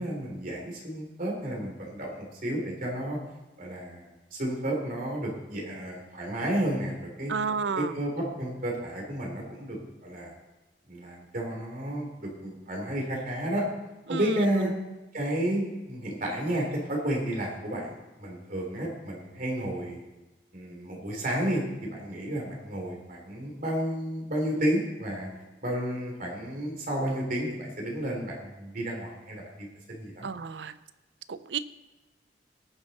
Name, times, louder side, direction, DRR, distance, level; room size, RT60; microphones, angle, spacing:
voice 1, 0.0-3.2 3.6-7.3 7.6-10.3 10.9-13.6 14.1-14.7 15.1-20.0 20.5-21.6 21.9-25.3 25.6-30.3, right 1 dB, 50° right, 0 dB, 3.1 m, -32 dB
voice 2, 7.3-7.9 14.1-14.7 30.2-30.8 31.3-31.6, right 5 dB, 85° right, 14 dB, 0.6 m, -32 dB
18.5 x 7.0 x 4.1 m, 1.1 s
head